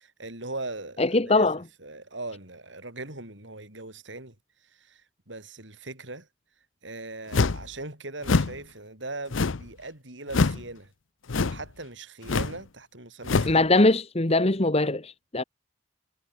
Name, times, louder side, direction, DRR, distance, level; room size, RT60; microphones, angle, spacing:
voice 1, 0.0-1.5 1.8-4.4 4.6-6.3 6.8-10.9 11.3-13.7, right 2 dB, 70° right, 5.7 m, -40 dB
voice 2, 1.0-1.6 13.5-15.4, left 2 dB, 30° left, 1.4 m, -22 dB
sound 1, 7.3-7.7 8.2-8.6 9.3-9.7 10.3-10.6 11.3-11.7 12.2-12.6 13.2-13.6, left 4 dB, 85° left, 0.7 m, -25 dB
head